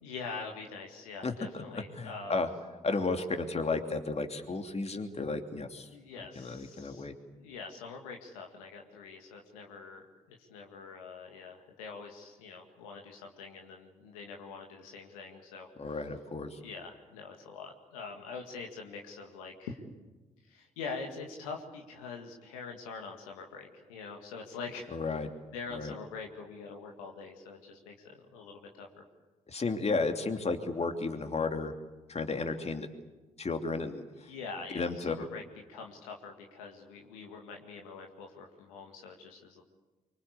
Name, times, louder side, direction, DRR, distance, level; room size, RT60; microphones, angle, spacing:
voice 1, 0.0-2.4 5.9-7.1 7.4-16.0 16.6-19.8 20.4-25.2 25.5-29.0 34.2-35.4 35.7-39.6, left 4 dB, 80° left, 2 dB, 2.0 m, -44 dB
voice 2, 1.7-2.5 2.8-5.9 6.2-7.1 15.8-16.6 24.9-25.3 25.7-25.9 29.5-31.7 32.1-32.9 33.4-34.0 34.7-35.2, left 3 dB, 35° left, 5 dB, 2.9 m, -33 dB
24.5 x 24.5 x 8.3 m, 1.2 s
hypercardioid pair, 40°, 18 cm